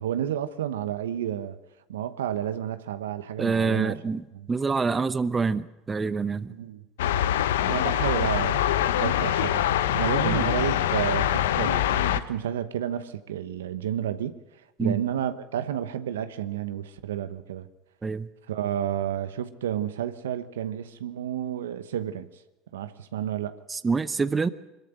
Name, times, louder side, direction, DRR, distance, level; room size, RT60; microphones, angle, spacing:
voice 1, 0.0-1.6 1.9-4.0 4.3-4.5 6.5-6.8 7.6-9.6 10.0-14.3 14.8-17.7 18.5-22.3 22.7-23.6, right 10 dB, 85° right, 1.0 m, -31 dB
voice 2, 3.4-6.5 10.2-10.5 14.8-15.0 18.0-18.3 23.7-24.5, right 4 dB, 20° right, 0.9 m, -26 dB
sound 1, 7.0-12.2, left 11 dB, 80° left, 0.8 m, -24 dB
22.5 x 14.0 x 9.1 m
hypercardioid pair, 80°, 0 cm